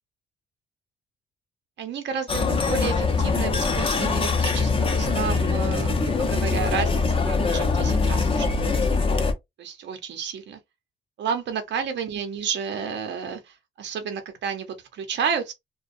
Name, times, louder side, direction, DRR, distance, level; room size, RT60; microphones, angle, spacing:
voice 1, 1.8-4.7 5.0-8.5 9.6-10.6 11.2-15.5, right 7 dB, 65° right, 0.7 m, -31 dB
sound 1, 2.3-9.3, left 4 dB, 25° left, 0.6 m, -23 dB
2.4 x 2.2 x 2.5 m
cardioid pair, 90°, 20 cm